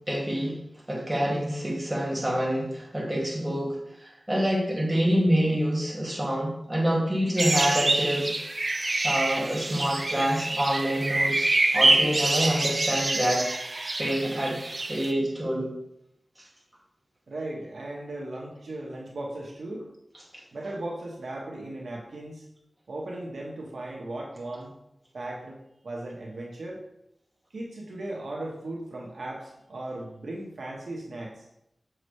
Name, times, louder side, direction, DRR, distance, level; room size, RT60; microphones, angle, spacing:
voice 1, 0.1-0.6 0.9-8.3 9.0-11.5 11.7-13.4 14.0-14.6 14.9-15.7, equal, 20° right, -4 dB, 2.3 m, -26 dB
sound 1, 7.4-15.1, right 2 dB, 45° right, 0.5 m, -26 dB
voice 2, 17.3-19.9 20.5-22.4 22.9-24.7 25.1-25.6 25.8-26.8 27.5-31.4, right 1 dB, 85° right, -2 dB, 1.3 m, -37 dB
6.4 x 6.3 x 3.3 m, 0.79 s
wide cardioid pair, 90°, 0 cm